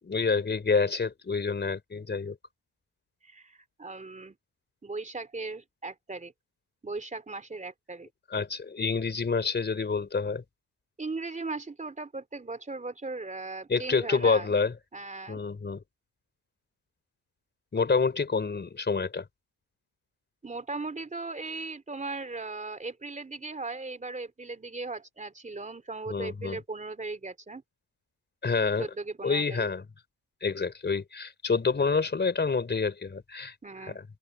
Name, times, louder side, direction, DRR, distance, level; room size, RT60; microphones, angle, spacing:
voice 1, 0.0-2.4 8.3-10.4 13.7-14.7 15.3-15.8 17.7-19.2 26.1-26.6 28.4-28.9 29.2-29.8 30.4-33.5 33.9-34.0, left 4 dB, 25° left, 4.5 m, -27 dB
voice 2, 3.2-4.4 4.8-6.3 6.8-8.1 11.0-14.5 14.9-15.4 20.4-27.6 28.8-29.7 33.6-34.0, right 3 dB, 15° right, 3.3 m, -38 dB
open air
cardioid pair, 130°, 42 cm